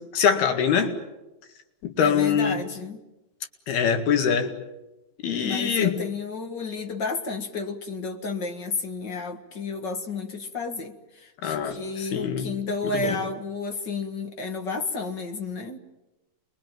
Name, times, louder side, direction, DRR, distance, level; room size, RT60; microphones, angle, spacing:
voice 1, 0.1-0.9 1.8-2.6 3.7-4.5 5.2-5.9 11.4-12.5 12.9-13.2, left 7 dB, 80° left, 6 dB, 3.9 m, -23 dB
voice 2, 2.0-3.0 5.4-15.8, left 3 dB, 45° left, 5 dB, 1.5 m, -31 dB
29.0 x 22.5 x 9.2 m, 1.0 s
omnidirectional pair, 4.4 m